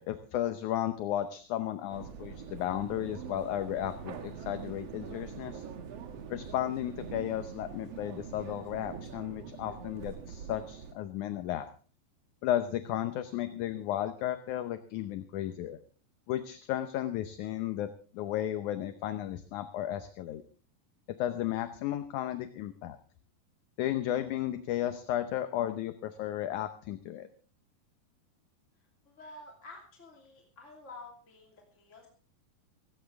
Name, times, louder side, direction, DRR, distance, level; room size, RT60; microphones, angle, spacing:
voice 1, 0.0-5.6 6.3-11.7 12.4-15.8 16.3-20.4 21.2-23.0 23.8-27.3, left 12 dB, 70° left, 10 dB, 2.0 m, -34 dB
sound 1, 1.9-10.9, right 7 dB, 55° right, 2.1 m, -44 dB
voice 2, 29.0-32.1, left 2 dB, 20° left, 0 dB, 2.8 m, -50 dB
17.0 x 17.0 x 3.5 m, 0.39 s
omnidirectional pair, 4.1 m